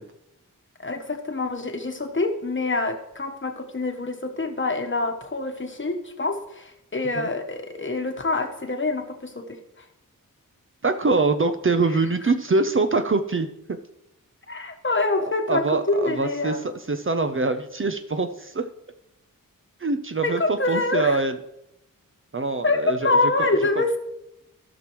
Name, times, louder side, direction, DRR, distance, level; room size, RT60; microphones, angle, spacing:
voice 1, 0.8-9.6 14.5-16.7 20.2-21.2 22.6-24.0, left 3 dB, 35° left, 4 dB, 1.2 m, -26 dB
voice 2, 10.8-13.8 15.5-18.7 19.8-21.4 22.3-23.5 23.8-24.0, right 3 dB, 35° right, 8 dB, 0.6 m, -24 dB
16.0 x 6.0 x 3.1 m, 0.84 s
wide cardioid pair, 85°, 34 cm